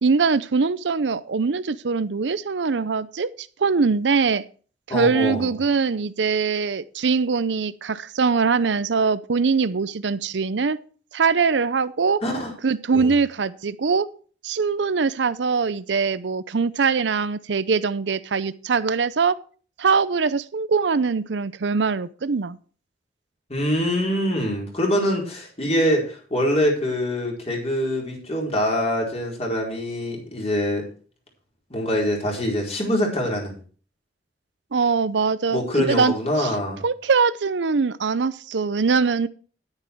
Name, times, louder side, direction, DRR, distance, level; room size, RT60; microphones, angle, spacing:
voice 1, 0.0-4.4 4.9-10.8 11.1-12.2 12.6-14.1 14.4-19.4 19.8-22.6 34.7-36.6 36.8-39.3, right 5 dB, 85° right, 15 dB, 0.6 m, -22 dB
voice 2, 4.9-5.5 12.2-12.5 12.9-13.1 23.5-30.8 31.7-33.6 35.5-36.8, equal, 35° left, 0 dB, 4.4 m, -24 dB
10.5 x 9.7 x 4.6 m, 0.40 s
head